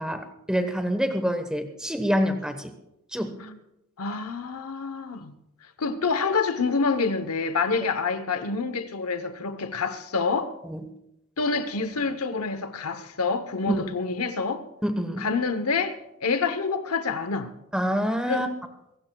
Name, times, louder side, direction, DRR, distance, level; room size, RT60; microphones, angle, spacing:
voice 1, 0.0-2.7 3.1-3.3 10.6-10.8 13.7-13.8 14.8-15.3 17.7-18.5, equal, 5° right, 1.0 m, -26 dB
voice 2, 4.0-5.3 5.8-10.6 11.4-14.6 15.2-17.5 18.3-18.4, left 4 dB, 85° left, 0.9 m, -27 dB
26.5 x 16.0 x 2.3 m
head